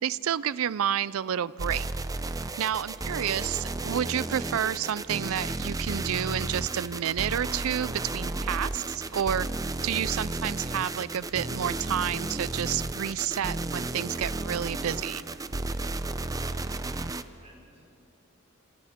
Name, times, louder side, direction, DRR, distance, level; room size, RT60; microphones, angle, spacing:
voice 1, 0.0-1.8 2.6-9.5 9.8-15.2, right 9 dB, 80° right, 19 dB, 0.4 m, -30 dB
sound 1, 1.6-17.2, right 2 dB, 15° right, 0.5 m, -33 dB
voice 2, 16.3-17.8, right 1 dB, 35° right, -4 dB, 5.0 m, -52 dB
30.0 x 27.0 x 3.6 m, 2.7 s
head